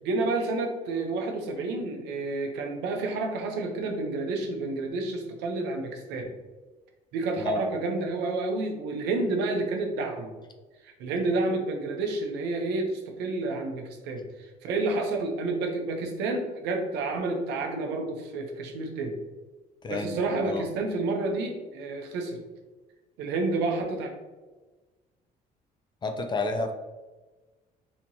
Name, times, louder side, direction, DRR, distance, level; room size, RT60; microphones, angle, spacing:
voice 1, 0.0-6.3 7.1-10.3 10.8-19.2 19.9-22.4 23.2-24.1, right 3 dB, 90° right, 3 dB, 0.7 m, -30 dB
voice 2, 19.8-20.2 20.4-20.7 26.0-26.7, left 2 dB, 25° left, 6 dB, 0.4 m, -30 dB
4.4 x 2.8 x 2.7 m, 1.2 s
cardioid pair, 110°, 17 cm